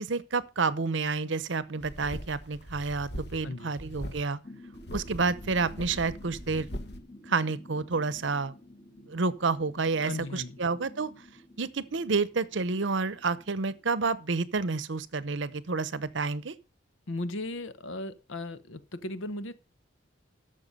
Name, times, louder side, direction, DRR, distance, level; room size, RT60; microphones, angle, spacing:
voice 1, 0.0-4.4 4.9-6.7 7.3-8.5 9.1-11.1 11.6-16.5, right 4 dB, 70° right, 0.8 m, -29 dB
sound 1, 1.8-3.5 3.8-4.2 4.7-7.0, equal, 55° left, 1.5 m, -41 dB
sound 2, 4.4-14.9, left 1 dB, 40° left, 1.9 m, -52 dB
voice 2, 10.0-10.6 17.1-19.5, left 2 dB, 85° left, 0.9 m, -36 dB
12.0 x 6.9 x 5.3 m
head